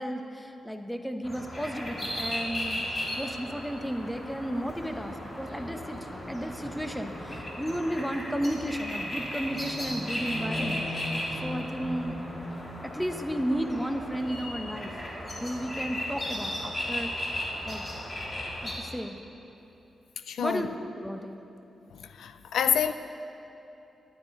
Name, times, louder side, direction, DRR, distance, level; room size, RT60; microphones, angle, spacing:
voice 1, 0.0-2.8 3.2-6.0 6.3-10.8 11.4-12.2 12.8-14.9 15.4-17.8 18.6-19.2 20.4-21.4, equal, ahead, 6 dB, 0.8 m, -33 dB
sound 1, 1.2-18.7, left 1 dB, 35° left, 2.7 m, -35 dB
voice 2, 20.3-20.7 22.2-22.9, left 8 dB, 85° left, 10 dB, 0.4 m, -27 dB
12.0 x 9.5 x 5.3 m, 2.9 s
cardioid pair, 80°, 0 cm